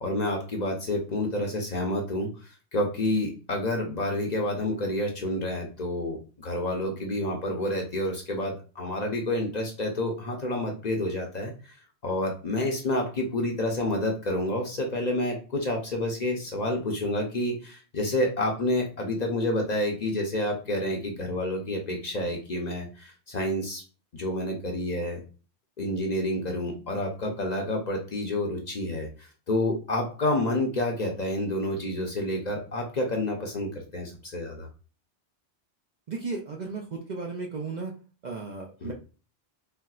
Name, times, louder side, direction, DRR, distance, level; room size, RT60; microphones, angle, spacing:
voice 1, 0.0-2.3 2.7-11.5 12.0-23.8 24.1-25.2 25.8-34.7 38.8-38.9, left 1 dB, 45° left, 1 dB, 0.6 m, -29 dB
voice 2, 36.1-37.9 38.2-38.9, right 4 dB, 55° right, 0 dB, 0.5 m, -35 dB
4.2 x 2.0 x 2.3 m, 0.35 s
omnidirectional pair, 1.1 m